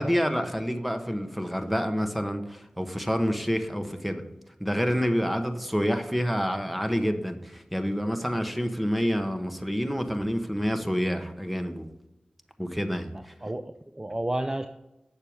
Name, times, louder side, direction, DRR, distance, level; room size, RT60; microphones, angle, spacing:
voice 1, 0.0-4.2 4.6-11.8 12.6-13.3, equal, ahead, 7 dB, 1.1 m, -28 dB
voice 2, 13.1-14.7, right 1 dB, 20° right, 8 dB, 0.5 m, -32 dB
8.8 x 6.7 x 4.7 m, 0.94 s
wide cardioid pair, 55°, 3 cm